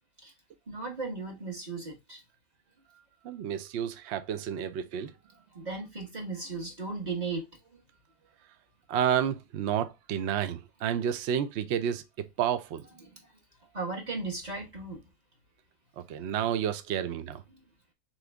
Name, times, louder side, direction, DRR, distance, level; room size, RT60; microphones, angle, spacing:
voice 1, 0.7-2.2 5.5-7.8 13.0-13.2 13.7-15.0 16.1-16.3, right 3 dB, 30° right, 1.2 m, -36 dB
voice 2, 3.2-5.1 8.9-12.0 12.4-12.8 16.0-17.4, right 9 dB, 85° right, 0.6 m, -30 dB
3.9 x 3.1 x 3.3 m
omnidirectional pair, 1.8 m